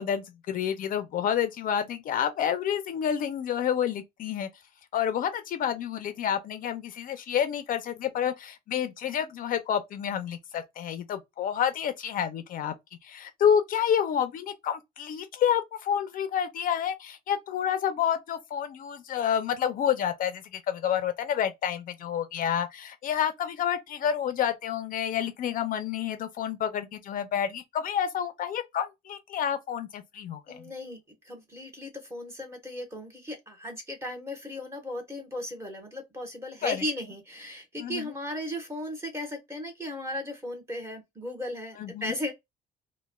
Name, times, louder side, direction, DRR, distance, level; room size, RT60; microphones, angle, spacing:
voice 1, 0.0-4.5 4.9-12.7 13.0-30.7 36.6-36.8 37.8-38.1 41.8-42.1, left 9 dB, 55° left, 0.5 m, -29 dB
voice 2, 30.5-42.3, left 1 dB, 15° right, 1.2 m, -36 dB
3.1 x 2.2 x 2.2 m
cardioid pair, 110°, 17 cm